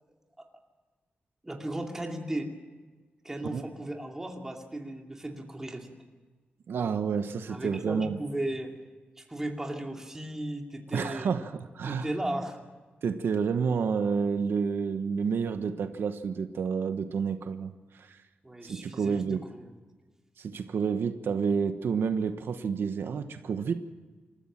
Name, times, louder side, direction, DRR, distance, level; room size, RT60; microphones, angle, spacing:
voice 1, 1.4-2.5 3.2-5.9 7.5-8.7 9.2-11.3 11.9-12.6 18.4-19.6, right 1 dB, 10° right, 2 dB, 2.5 m, -36 dB
voice 2, 6.7-8.2 10.9-12.1 13.0-18.2 18.6-19.4 20.4-23.7, right 6 dB, 85° right, 8 dB, 1.2 m, -29 dB
27.0 x 14.5 x 7.4 m, 1.3 s
wide cardioid pair, 165°, 4 cm